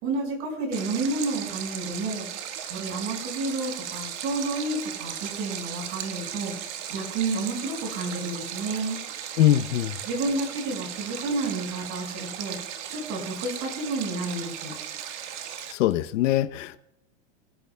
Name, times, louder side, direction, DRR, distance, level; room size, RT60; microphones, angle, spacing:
voice 1, 0.0-2.3 2.7-6.5 6.9-9.0 10.0-12.6 12.9-14.7, right 3 dB, 35° right, 2 dB, 5.1 m, -30 dB
Stream, 0.7-15.7, right 9 dB, 65° right, 1.6 m, -36 dB
voice 2, 9.4-10.0 15.7-16.8, left 12 dB, 70° left, 10 dB, 0.8 m, -22 dB
25.5 x 10.5 x 2.2 m, 0.83 s
supercardioid pair, 155°, 38 cm